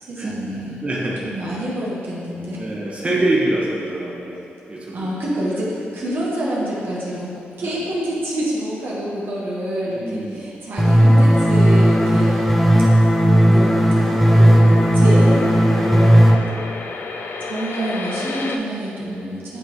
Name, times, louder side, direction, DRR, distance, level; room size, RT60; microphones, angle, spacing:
voice 1, 0.0-0.9 1.2-2.6 4.9-12.4 13.5-16.3 17.5-19.6, right 1 dB, 65° right, -6 dB, 1.3 m, -27 dB
voice 2, 0.8-1.2 2.5-4.4 4.7-5.1 7.6-7.8 9.8-10.4 12.7-13.0 16.4-16.7, right 1 dB, 30° right, -6 dB, 1.3 m, -25 dB
sound 1, 10.8-16.4, equal, ahead, 0.6 m, -14 dB
sound 2, 11.7-18.6, left 3 dB, 65° left, 0.4 m, -33 dB
9.2 x 3.3 x 3.1 m, 2.8 s
cardioid pair, 70°, 4 cm